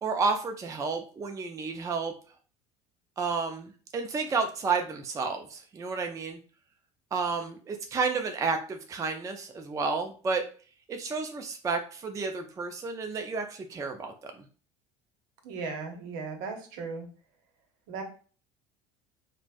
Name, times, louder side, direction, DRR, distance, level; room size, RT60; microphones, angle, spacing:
voice 1, 0.0-2.1 3.2-6.4 7.1-10.4 10.9-14.4, right 4 dB, 20° right, 5 dB, 0.4 m, -31 dB
voice 2, 15.4-17.1 17.9-18.0, right 4 dB, 65° right, 3 dB, 0.8 m, -36 dB
3.1 x 2.0 x 2.4 m, 0.40 s
hypercardioid pair, 70°, 16 cm